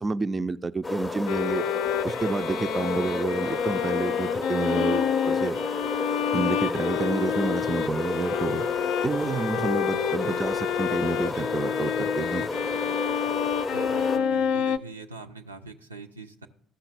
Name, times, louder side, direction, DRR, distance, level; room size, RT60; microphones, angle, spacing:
voice 1, 0.0-1.6 2.0-5.6 6.3-8.7 9.0-12.5, right 3 dB, 25° right, 0.3 m, -29 dB
sound 1, 0.8-14.2, left 3 dB, 20° left, 0.6 m, -31 dB
Bowed string instrument, 1.3-14.8, left 9 dB, 60° left, 0.4 m, -29 dB
voice 2, 9.2-10.4 13.7-16.5, right 4 dB, 85° right, 0.4 m, -42 dB
14.5 x 5.6 x 3.4 m
figure-of-eight pair, 50°, 0 cm